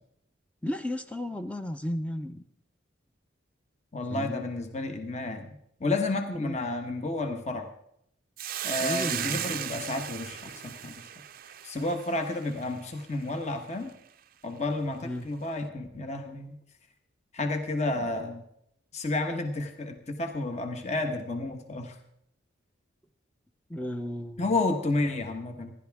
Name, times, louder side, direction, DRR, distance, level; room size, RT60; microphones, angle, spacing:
voice 1, 0.6-2.4 4.1-4.5 6.4-6.6 8.8-9.6 15.0-15.3 17.9-18.1 23.7-24.5, left 1 dB, 5° left, 8 dB, 0.6 m, -34 dB
voice 2, 3.9-7.7 8.6-11.0 11.6-13.9 14.4-16.6 17.3-18.4 18.9-22.0 24.4-25.7, left 2 dB, 35° left, 6 dB, 1.2 m, -31 dB
Hiss, 8.4-12.9, right 11 dB, 45° right, 0.5 m, -36 dB
27.0 x 11.5 x 3.6 m, 0.74 s
head